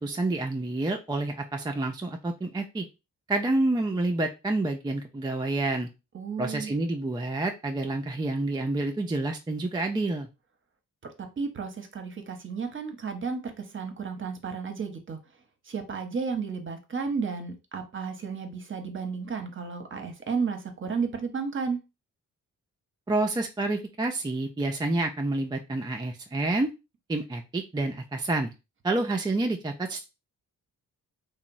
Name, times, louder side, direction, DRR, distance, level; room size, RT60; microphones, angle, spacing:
voice 1, 0.0-2.9 3.3-5.9 6.4-10.3 23.1-26.7 27.1-28.5 28.8-30.0, right 2 dB, 15° right, 0.3 m, -28 dB
voice 2, 6.1-6.7 11.4-15.2 15.7-21.8, right 5 dB, 35° right, 0.7 m, -33 dB
2.8 x 2.0 x 2.6 m
supercardioid pair, 50°, 34 cm